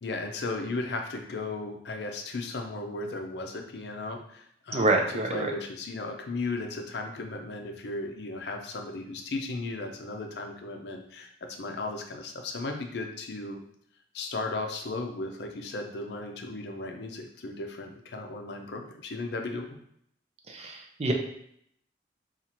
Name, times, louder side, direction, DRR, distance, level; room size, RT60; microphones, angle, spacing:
voice 1, 0.0-4.9 5.3-13.6 14.1-19.7, left 2 dB, 70° left, 3 dB, 0.5 m, -35 dB
voice 2, 4.7-5.5 20.5-21.1, right 2 dB, 35° right, 2 dB, 0.4 m, -26 dB
2.8 x 2.4 x 4.2 m, 0.69 s
head